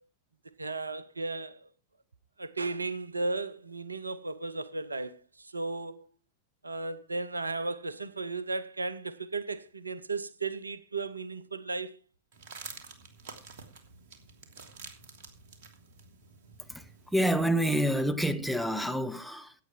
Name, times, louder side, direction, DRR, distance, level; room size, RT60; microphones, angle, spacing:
voice 1, 0.6-1.7 2.4-6.1 6.6-12.0, right 3 dB, 80° right, 0.8 m, -35 dB
sound 1, 12.3-17.4, right 5 dB, 50° right, 2.7 m, -49 dB
voice 2, 16.7-19.5, right 1 dB, ahead, 1.1 m, -28 dB
16.0 x 8.7 x 4.6 m
figure-of-eight pair, 90°, 0 cm